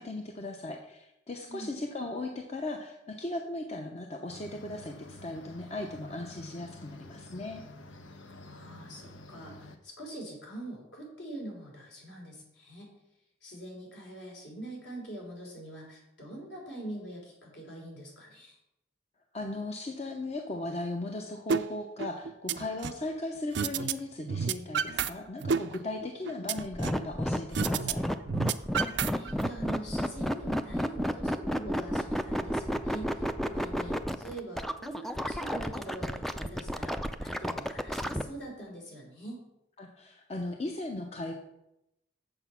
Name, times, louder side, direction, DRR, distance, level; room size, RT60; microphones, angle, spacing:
voice 1, 0.0-7.6 19.3-28.0 39.8-41.3, left 2 dB, 35° left, 3 dB, 0.7 m, -37 dB
sound 1, 4.3-9.8, left 2 dB, 90° left, 0.9 m, -49 dB
voice 2, 8.4-12.9 13.4-18.6 29.1-39.4, right 1 dB, 65° left, -1 dB, 3.4 m, -43 dB
sound 2, 21.5-21.6 22.0-23.0 23.5-23.9 24.2-25.1 25.4-27.1 27.5-27.9 28.2-29.5, right 6 dB, 65° right, 0.4 m, -30 dB
sound 3, 26.6-38.2, equal, ahead, 0.4 m, -31 dB
7.9 x 7.0 x 5.7 m, 0.87 s
head